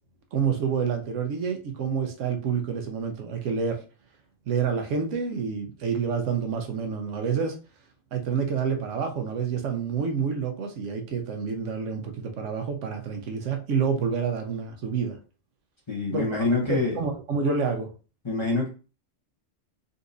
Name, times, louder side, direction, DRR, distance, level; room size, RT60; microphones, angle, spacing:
voice 1, 0.3-3.8 4.5-7.6 8.1-15.2 16.1-17.9, right 6 dB, 75° right, 5 dB, 1.0 m, -28 dB
voice 2, 15.9-17.0 18.2-18.7, left 3 dB, 25° left, -4 dB, 0.7 m, -25 dB
3.9 x 2.6 x 2.5 m, 0.34 s
omnidirectional pair, 1.3 m